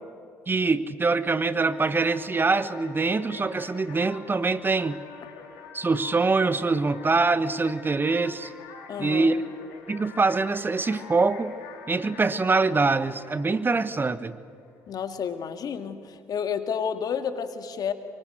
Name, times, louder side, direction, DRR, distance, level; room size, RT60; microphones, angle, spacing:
voice 1, 0.5-5.0 5.7-8.5 9.0-9.4 9.9-11.5 11.9-14.4, right 3 dB, 25° right, 14 dB, 1.2 m, -24 dB
sound 1, 1.2-14.7, left 5 dB, 80° left, 3.5 m, -46 dB
voice 2, 8.9-9.3 14.9-17.9, left 7 dB, 55° left, 9 dB, 2.1 m, -30 dB
24.5 x 23.5 x 7.9 m, 2.5 s
hypercardioid pair, 55°, 8 cm